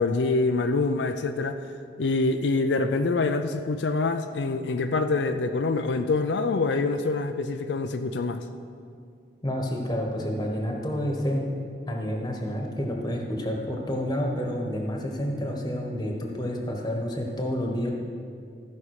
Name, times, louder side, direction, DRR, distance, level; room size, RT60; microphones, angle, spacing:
voice 1, 0.0-1.6 2.0-8.4, left 3 dB, 85° left, 7 dB, 0.5 m, -25 dB
voice 2, 9.4-11.6 11.9-17.9, equal, 25° left, 1 dB, 1.3 m, -29 dB
14.0 x 5.4 x 6.5 m, 2.4 s
head